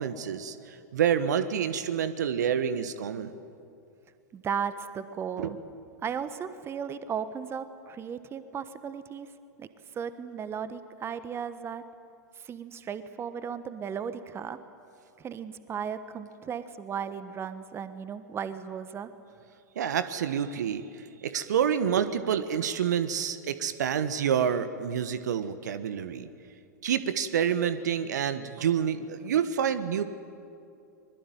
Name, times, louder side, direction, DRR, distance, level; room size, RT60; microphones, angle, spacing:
voice 1, 0.0-3.3 5.4-5.6 19.7-26.3 26.8-30.0, right 8 dB, 70° right, 12 dB, 1.3 m, -28 dB
voice 2, 4.3-5.6 6.0-9.3 9.6-9.7 9.9-11.8 12.4-14.6 15.2-19.1, right 7 dB, 25° right, 12 dB, 1.3 m, -35 dB
24.0 x 21.5 x 9.3 m, 2.5 s
figure-of-eight pair, 95°, 10 cm